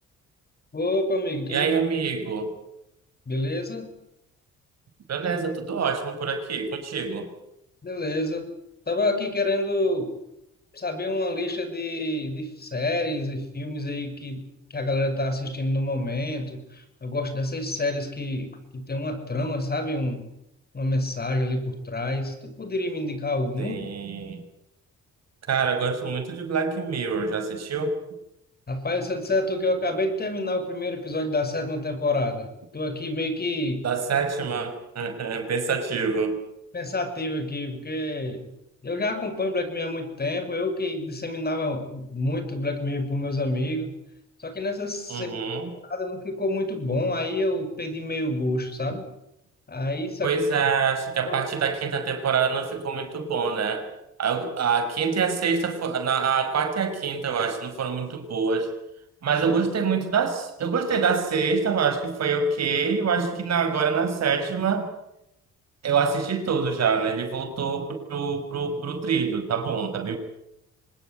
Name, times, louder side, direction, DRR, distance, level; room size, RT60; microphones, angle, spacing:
voice 1, 0.7-1.7 3.3-3.9 7.8-8.5 8.9-10.2 10.7-14.4 14.7-20.2 20.7-23.8 28.7-33.8 36.7-38.5 38.8-43.9 44.4-45.3 45.9-49.1 49.7-50.4 51.3-51.5, left 2 dB, 30° left, 9 dB, 5.9 m, -28 dB
voice 2, 1.5-2.5 5.1-7.3 23.6-24.4 25.5-28.0 33.8-36.4 45.1-45.7 50.2-53.9 54.2-58.7 59.2-64.9 65.8-70.2, right 5 dB, 60° right, 7 dB, 5.7 m, -25 dB
25.0 x 20.0 x 8.1 m, 0.83 s
cardioid pair, 90°, 30 cm